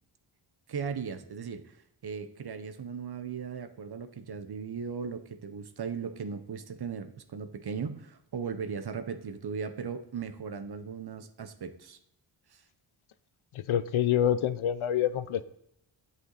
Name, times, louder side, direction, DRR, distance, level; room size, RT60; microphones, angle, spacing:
voice 1, 0.7-1.7 2.0-12.0 12.5-12.6, right 6 dB, 50° right, 10 dB, 1.0 m, -37 dB
voice 2, 13.5-15.4, left 10 dB, 70° left, 14 dB, 0.7 m, -27 dB
9.5 x 8.3 x 4.0 m, 0.76 s
cardioid pair, 95°, 50 cm